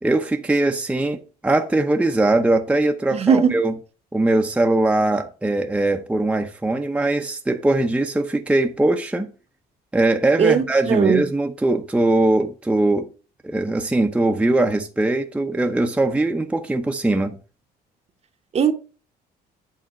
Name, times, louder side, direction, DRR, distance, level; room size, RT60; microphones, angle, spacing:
voice 1, 0.0-3.7 4.1-9.3 9.9-13.1 13.4-17.4, right 2 dB, 5° right, 0.7 m, -21 dB
voice 2, 3.1-3.6 10.4-11.3 18.5-18.7, right 7 dB, 40° right, 1.0 m, -18 dB
8.8 x 3.5 x 6.5 m
cardioid pair, 110°, 17 cm